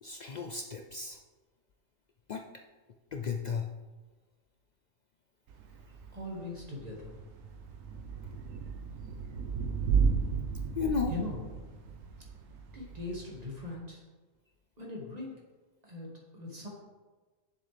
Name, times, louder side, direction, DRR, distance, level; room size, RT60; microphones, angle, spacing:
voice 1, 0.0-1.2 2.3-2.4 3.1-3.7 10.8-11.1, left 5 dB, 85° left, 3 dB, 0.3 m, -34 dB
Thunder / Rain, 5.5-13.8, right 5 dB, 75° right, 1.2 m, -34 dB
voice 2, 6.1-7.2 11.1-11.6 12.7-14.0 14.8-15.3 15.8-16.7, left 2 dB, 30° right, -2 dB, 1.8 m, -40 dB
8.9 x 7.0 x 3.4 m, 1.3 s
omnidirectional pair, 1.4 m